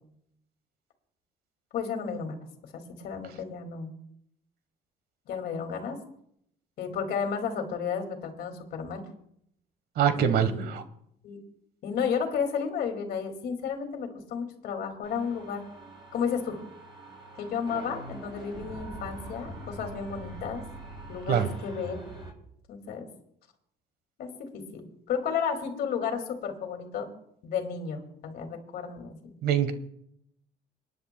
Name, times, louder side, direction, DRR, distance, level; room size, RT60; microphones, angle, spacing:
voice 1, 1.7-2.4 2.9-3.9 5.3-6.0 6.8-9.1 10.1-10.7 11.2-11.4 11.8-15.6 16.1-16.6 17.4-20.6 21.1-22.0 22.7-23.1 24.2-27.1 27.4-29.4, left 6 dB, 70° left, 5 dB, 2.2 m, -32 dB
voice 2, 10.0-10.8 21.3-21.5 29.4-29.7, right 8 dB, 65° right, 11 dB, 1.2 m, -24 dB
sound 1, 15.0-22.3, right 1 dB, 30° right, 5.1 m, -43 dB
26.0 x 10.0 x 2.2 m, 0.72 s
cardioid pair, 110°, 17 cm